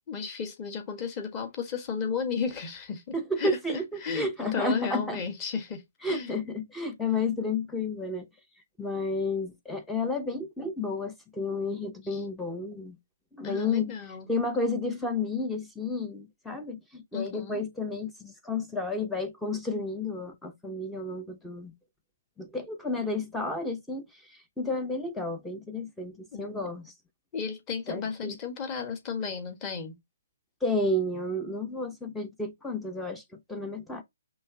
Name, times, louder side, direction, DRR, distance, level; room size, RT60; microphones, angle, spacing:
voice 1, 0.0-6.3 12.0-12.2 13.4-14.3 17.1-17.6 26.3-26.7 27.3-29.9, left 6 dB, 20° left, 1.5 m, -34 dB
voice 2, 3.1-5.2 6.0-8.3 8.8-13.0 13.4-13.9 14.3-21.7 22.4-26.9 27.9-28.4 30.6-33.2 33.5-34.0, left 2 dB, 5° left, 0.6 m, -31 dB
5.4 x 3.3 x 2.8 m
hypercardioid pair, 155°, 0 cm